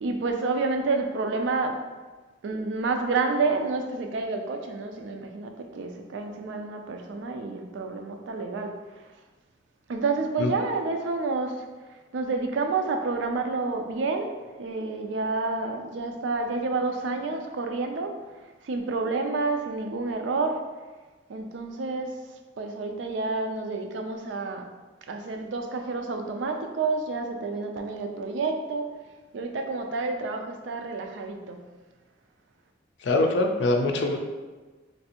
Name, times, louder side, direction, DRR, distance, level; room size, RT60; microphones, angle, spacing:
voice 1, 0.0-1.8 2.4-9.1 9.9-11.7 12.1-20.7 21.3-22.3 22.6-24.7 25.1-28.9 29.3-31.7, right 3 dB, 80° right, 4 dB, 0.4 m, -29 dB
voice 2, 33.0-34.2, left 2 dB, 70° left, 4 dB, 0.4 m, -23 dB
3.2 x 2.6 x 2.8 m, 1.3 s
head